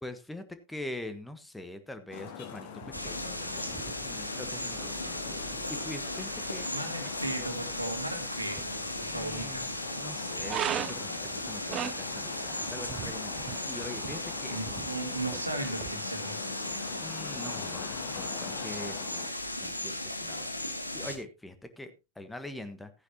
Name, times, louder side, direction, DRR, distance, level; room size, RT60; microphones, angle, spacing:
voice 1, 0.0-2.7 3.0-6.9 9.1-14.8 17.0-19.0 19.6-22.9, left 1 dB, 5° left, 10 dB, 1.3 m, -44 dB
Traffic noise roadway noise, 2.1-19.3, left 7 dB, 55° left, 2.3 m, -43 dB
sound 1, 2.8-15.9, right 10 dB, 30° right, 0.6 m, -42 dB
sound 2, 2.9-21.2, left 1 dB, 85° left, 1.5 m, -37 dB
voice 2, 6.7-9.8 14.5-16.7, right 2 dB, 85° right, 6 dB, 2.2 m, -37 dB
14.5 x 9.9 x 2.9 m, 0.27 s
figure-of-eight pair, 90°, 0 cm